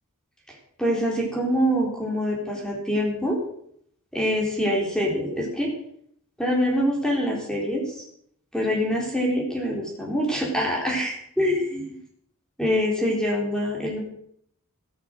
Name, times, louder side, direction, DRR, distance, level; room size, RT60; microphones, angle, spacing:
voice 1, 0.5-3.4 4.1-5.7 6.4-8.0 8.5-11.9 12.6-14.0, equal, 5° left, -2 dB, 3.7 m, -25 dB
14.5 x 12.0 x 6.5 m, 0.69 s
head